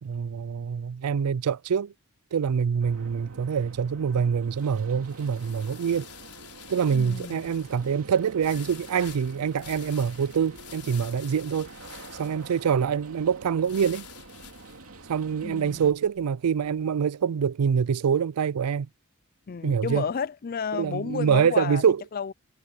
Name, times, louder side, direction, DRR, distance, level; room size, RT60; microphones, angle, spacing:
voice 1, 0.0-1.9 2.3-6.1 6.7-11.7 12.1-14.1 15.1-18.9 19.6-20.1 20.7-22.0, right 7 dB, 85° right, 0.4 m, -25 dB
sound 1, 2.8-15.9, right 2 dB, 70° right, 2.9 m, -47 dB
sound 2, 3.7-16.8, left 10 dB, 85° left, 4.3 m, -49 dB
voice 2, 6.9-7.5 15.4-15.9 19.5-21.8 22.1-22.3, left 6 dB, 40° left, 0.4 m, -32 dB
head